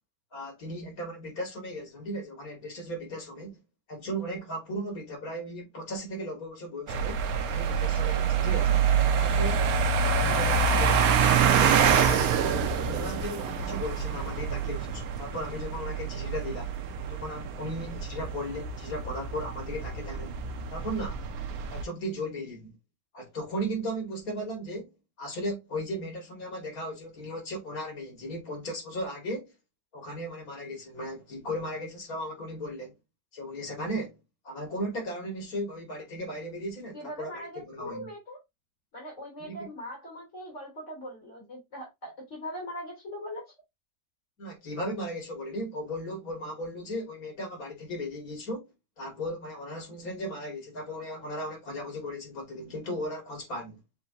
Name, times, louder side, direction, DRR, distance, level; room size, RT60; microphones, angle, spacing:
voice 1, 0.3-3.6 3.9-7.2 7.5-8.9 9.2-9.7 10.0-12.3 12.9-16.7 17.1-20.4 20.7-21.2 21.7-22.7 23.1-24.9 25.2-29.5 29.9-32.9 33.3-34.2 34.4-38.1 39.4-39.7 44.4-48.6 49.0-53.8, equal, 80° left, 2.6 m, -36 dB
sound 1, 6.9-21.8, right 6 dB, 80° right, 1.1 m, -26 dB
voice 2, 36.9-38.4 38.9-43.5, equal, 55° left, 3.2 m, -40 dB
6.6 x 2.8 x 2.6 m
omnidirectional pair, 1.5 m